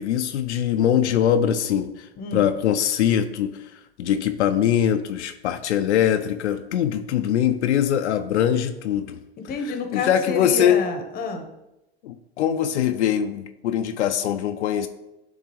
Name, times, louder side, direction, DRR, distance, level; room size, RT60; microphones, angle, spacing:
voice 1, 0.0-9.2 9.9-10.8 12.0-14.9, left 9 dB, 80° left, 7 dB, 0.6 m, -22 dB
voice 2, 9.5-11.5, left 4 dB, 25° left, 6 dB, 1.1 m, -29 dB
10.5 x 3.6 x 3.2 m, 0.91 s
hypercardioid pair, 120°, 34 cm